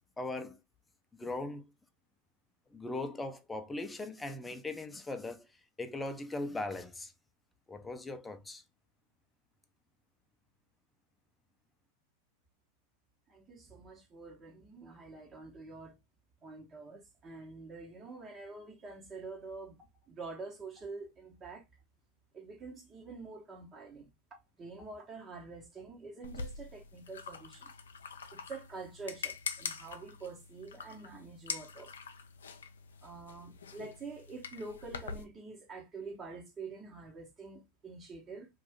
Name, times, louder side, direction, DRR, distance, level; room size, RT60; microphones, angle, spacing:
voice 1, 0.2-0.6 1.2-1.6 2.7-5.5 5.8-7.1 7.7-8.6, left 2 dB, 10° left, 0.5 m, -39 dB
voice 2, 13.3-16.0 16.4-21.6 22.3-24.1 24.6-27.7 28.3-31.9 33.0-38.5, right 4 dB, 30° right, 1.0 m, -46 dB
sound 1, 26.2-35.2, left 5 dB, 85° left, 0.4 m, -44 dB
2.6 x 2.4 x 3.4 m
hypercardioid pair, 95°, 0 cm